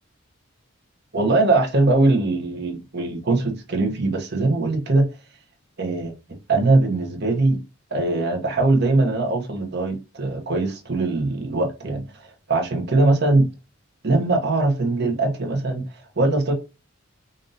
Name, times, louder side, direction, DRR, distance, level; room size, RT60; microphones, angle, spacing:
voice 1, 1.1-5.0 5.8-6.1 6.5-7.6 7.9-13.5 14.0-16.5, right 2 dB, 50° right, 0.8 m, -21 dB
5.2 x 2.6 x 2.6 m
head